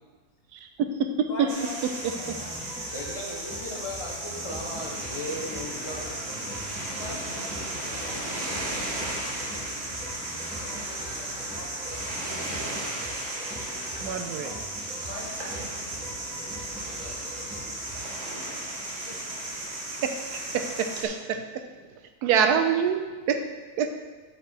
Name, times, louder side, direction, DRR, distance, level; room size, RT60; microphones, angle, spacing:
voice 1, 0.5-1.5 2.0-2.1 14.0-14.5 20.0-20.1 20.5-21.7 22.2-23.5 23.8-23.9, right 7 dB, 85° right, 7 dB, 1.2 m, -26 dB
voice 2, 1.3-2.5 7.0-9.7 10.6-12.0 14.4-14.5 15.1-16.0 16.8-17.7 19.1-19.2, left 1 dB, 55° left, -2 dB, 1.7 m, -44 dB
sound 1, 1.5-21.0, right 1 dB, 45° right, 1.7 m, -35 dB
sound 2, 2.0-18.3, equal, 5° right, 2.3 m, -43 dB
voice 3, 2.9-6.1, left 1 dB, 20° left, -2 dB, 1.1 m, -36 dB
8.8 x 5.2 x 4.4 m, 1.3 s
omnidirectional pair, 1.7 m